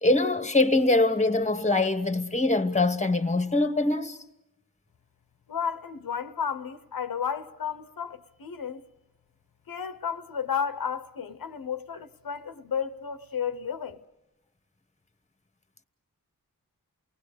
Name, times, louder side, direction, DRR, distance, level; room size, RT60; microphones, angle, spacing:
voice 1, 0.0-4.2, left 2 dB, 20° left, 1.2 m, -23 dB
voice 2, 5.5-8.8 9.7-14.0, left 7 dB, 90° left, 0.9 m, -32 dB
29.0 x 19.0 x 6.6 m
wide cardioid pair, 65°, 34 cm